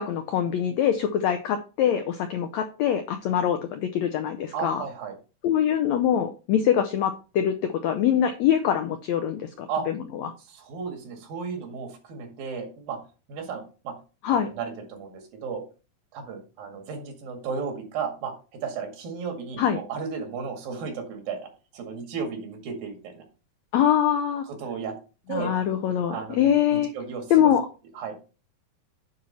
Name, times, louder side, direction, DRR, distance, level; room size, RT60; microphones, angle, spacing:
voice 1, 0.0-4.8 5.4-10.3 14.2-14.5 19.6-19.8 23.7-24.5 25.3-26.9 27.3-27.7, left 9 dB, 85° left, 8 dB, 1.5 m, -24 dB
voice 2, 4.5-5.2 9.7-9.9 10.5-13.0 13.3-13.9 14.3-15.6 16.1-21.4 21.7-23.2 24.5-24.9 25.3-25.5 26.1-27.5 27.9-28.2, right 5 dB, 85° right, 3 dB, 3.7 m, -34 dB
9.5 x 4.1 x 5.6 m, 0.34 s
omnidirectional pair, 4.0 m